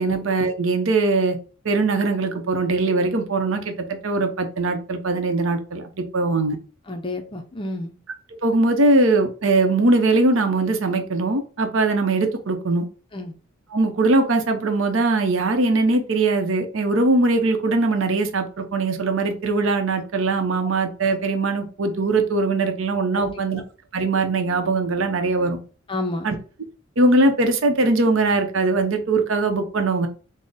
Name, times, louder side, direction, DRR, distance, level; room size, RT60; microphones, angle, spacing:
voice 1, 0.0-1.4 1.6-6.6 8.4-12.9 13.7-23.6 23.9-25.6 26.2-26.4 27.0-30.1, right 2 dB, 70° right, 0.7 m, -21 dB
voice 2, 6.9-7.9 13.1-13.3 23.1-23.6 25.9-26.3, left 2 dB, 25° left, 0.4 m, -30 dB
3.7 x 2.0 x 4.0 m
head